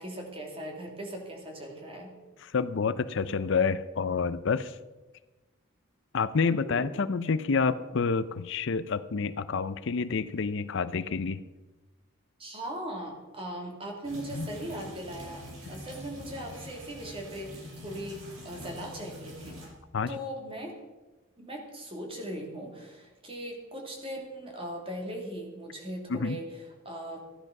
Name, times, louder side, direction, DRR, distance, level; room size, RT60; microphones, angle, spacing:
voice 1, 0.0-2.1 6.6-6.9 12.4-19.5 20.1-20.7 21.4-27.2, right 1 dB, 25° right, 1 dB, 2.7 m, -39 dB
voice 2, 2.4-4.8 6.1-11.4 14.3-14.5 19.9-20.1 26.1-26.4, left 5 dB, 60° left, 14 dB, 0.5 m, -28 dB
sound 1, 14.0-19.7, equal, 75° right, 6.3 m, -44 dB
14.0 x 10.5 x 5.9 m, 1.1 s
head